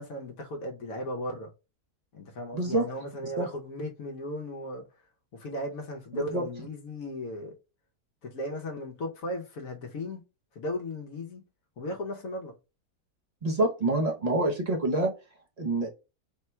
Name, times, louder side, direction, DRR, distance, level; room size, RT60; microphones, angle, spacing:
voice 1, 0.0-1.5 2.1-4.9 5.3-7.6 8.2-10.2 10.5-11.4 11.8-12.5, left 1 dB, 65° left, 1.1 m, -36 dB
voice 2, 2.5-2.9 3.2-3.5 6.1-6.4 13.4-15.1 15.6-15.9, right 2 dB, 40° right, 0.6 m, -27 dB
3.7 x 2.2 x 4.2 m
omnidirectional pair, 1.6 m